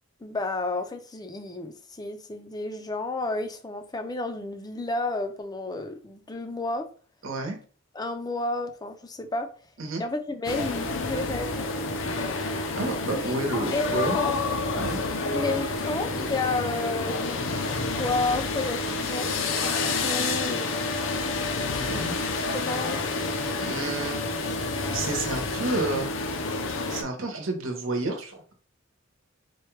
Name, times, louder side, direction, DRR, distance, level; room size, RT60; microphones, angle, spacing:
voice 1, 0.2-6.9 7.9-9.5 10.0-11.7 13.1-14.3 15.2-20.7 21.9-22.1 22.4-23.0, left 2 dB, 20° left, 0.4 m, -32 dB
voice 2, 7.2-7.6 9.8-10.0 12.8-14.2 14.7-15.0 21.6-22.1 23.6-24.2 24.9-26.1 26.9-28.5, right 2 dB, 70° right, 1.0 m, -30 dB
sound 1, 10.4-27.0, left 3 dB, 70° left, 0.6 m, -29 dB
4.4 x 2.3 x 3.1 m
head